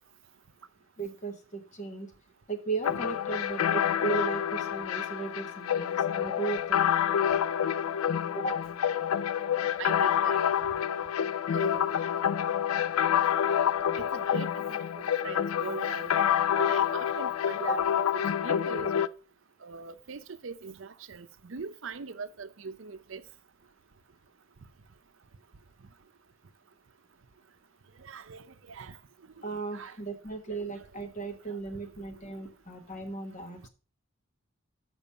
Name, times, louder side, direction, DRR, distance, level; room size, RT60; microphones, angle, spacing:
voice 1, 1.0-2.1 2.5-6.9 8.3-8.6 17.6-17.8 29.4-33.7, right 4 dB, 35° left, 1.2 m, -36 dB
sound 1, 2.8-19.1, left 9 dB, 85° left, 0.4 m, -28 dB
voice 2, 9.8-10.4 11.5-11.9 14.0-14.8 15.2-16.1 16.6-17.8 18.4-18.9 19.6-23.2 28.1-28.9 29.4-29.9, right 5 dB, 65° right, 0.6 m, -41 dB
7.0 x 6.1 x 5.5 m
head